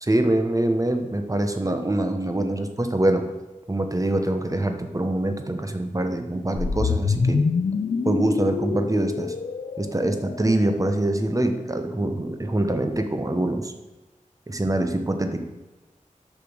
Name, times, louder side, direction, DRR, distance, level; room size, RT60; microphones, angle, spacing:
voice 1, 0.0-3.3 3.7-7.4 8.0-9.3 9.8-13.7 14.5-15.4, right 1 dB, 25° right, 6 dB, 1.0 m, -24 dB
sound 1, 6.5-10.8, left 5 dB, 60° left, 0.5 m, -26 dB
6.8 x 6.0 x 6.1 m, 1.1 s
wide cardioid pair, 70°, 14 cm